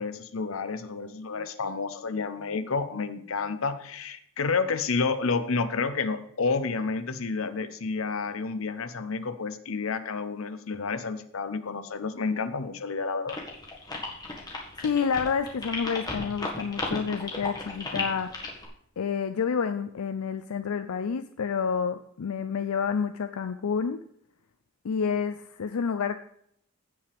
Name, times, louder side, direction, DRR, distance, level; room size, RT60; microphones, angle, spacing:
voice 1, 0.0-13.4, left 4 dB, 75° left, 11 dB, 0.8 m, -30 dB
rewind underscore, 13.3-18.7, left 2 dB, 20° left, 1.7 m, -35 dB
voice 2, 14.8-18.4 19.0-24.0 24.8-26.2, left 6 dB, 90° left, 10 dB, 0.5 m, -29 dB
16.0 x 5.7 x 3.4 m, 0.70 s
head